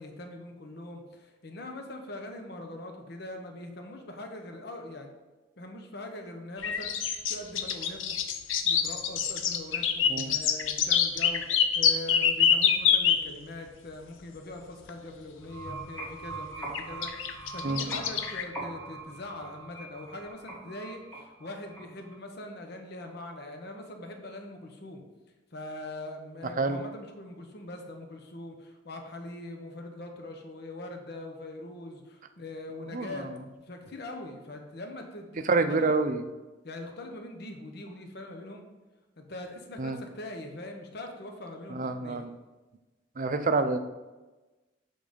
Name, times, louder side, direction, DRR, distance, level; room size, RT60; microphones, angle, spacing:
voice 1, 0.0-5.1 5.6-8.2 8.6-25.0 25.5-35.9 36.6-38.6 39.2-42.2, left 1 dB, 55° left, 4 dB, 0.9 m, -42 dB
sound 1, 6.6-13.2 14.9-15.0 16.7-18.4, left 8 dB, 85° left, 0.6 m, -25 dB
sound 2, 15.4-22.1, right 3 dB, 10° left, 1.5 m, -42 dB
voice 2, 32.9-33.3 35.4-36.2 39.8-40.0 41.7-42.4 43.2-43.8, right 3 dB, 45° right, 9 dB, 0.5 m, -27 dB
7.4 x 3.9 x 5.1 m, 1.2 s
head